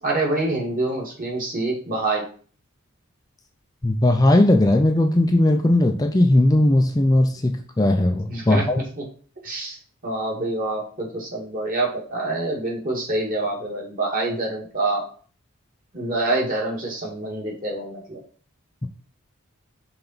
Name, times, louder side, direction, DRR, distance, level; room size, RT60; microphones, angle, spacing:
voice 1, 0.0-2.3 8.3-9.1 9.4-9.8 10.0-15.1 15.9-18.2, right 2 dB, 40° right, -2 dB, 2.2 m, -26 dB
voice 2, 3.8-8.8, left 1 dB, 15° left, 4 dB, 0.5 m, -18 dB
5.8 x 3.9 x 5.7 m, 0.43 s
head